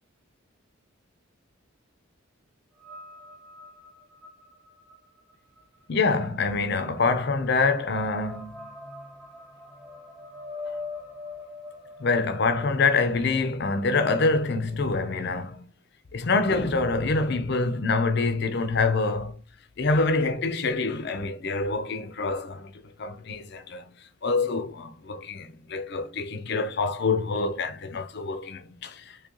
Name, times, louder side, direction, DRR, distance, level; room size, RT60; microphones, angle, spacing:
sound 1, 2.8-15.2, left 2 dB, 5° right, 0.6 m, -43 dB
voice 1, 5.9-8.6 12.0-15.6 16.1-19.3 19.8-22.7 23.0-23.8 24.2-29.0, left 3 dB, 55° left, 0.5 m, -26 dB
3.8 x 2.8 x 2.9 m
head